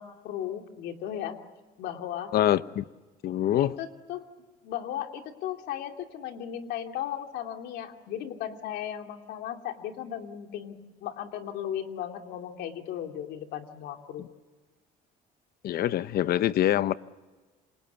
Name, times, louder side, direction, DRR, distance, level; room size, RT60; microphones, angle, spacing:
voice 1, 0.0-1.4 1.8-2.4 3.6-4.2 4.6-14.3, left 10 dB, 80° left, 2.9 m, -36 dB
voice 2, 2.3-2.8 3.2-3.8 14.2-14.3 15.6-16.9, left 12 dB, 65° left, 0.9 m, -25 dB
27.5 x 26.5 x 7.0 m
cardioid pair, 110°, 17 cm